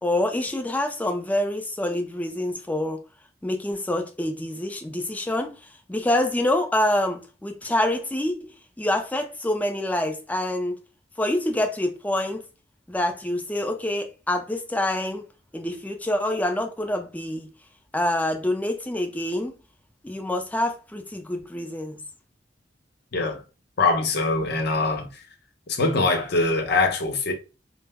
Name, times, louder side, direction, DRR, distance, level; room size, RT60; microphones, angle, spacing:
voice 1, 0.0-3.0 3.4-5.5 5.9-8.5 8.8-10.7 11.2-12.5 12.9-15.3 15.5-17.5 17.9-19.5 20.0-22.0, left 1 dB, 10° left, 0.4 m, -26 dB
voice 2, 23.1-23.4 23.8-25.1 25.7-27.3, left 3 dB, 65° left, 0.7 m, -23 dB
2.1 x 2.0 x 3.4 m
head